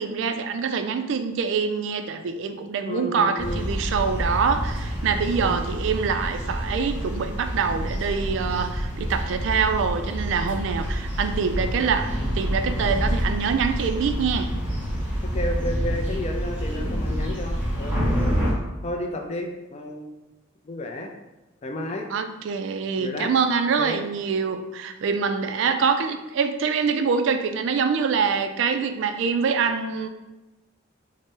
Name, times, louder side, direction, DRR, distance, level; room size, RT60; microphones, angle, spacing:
voice 1, 0.0-14.5 22.1-30.1, right 5 dB, 65° right, 8 dB, 0.3 m, -25 dB
voice 2, 2.8-3.6 5.4-5.6 15.2-18.5 18.8-20.1 20.6-21.1 21.6-22.1 23.0-23.3 23.8-24.0, left 1 dB, 30° left, 3 dB, 0.3 m, -32 dB
sound 1, 3.4-18.5, equal, 10° right, 0.8 m, -27 dB
3.9 x 2.0 x 3.6 m, 1.1 s
head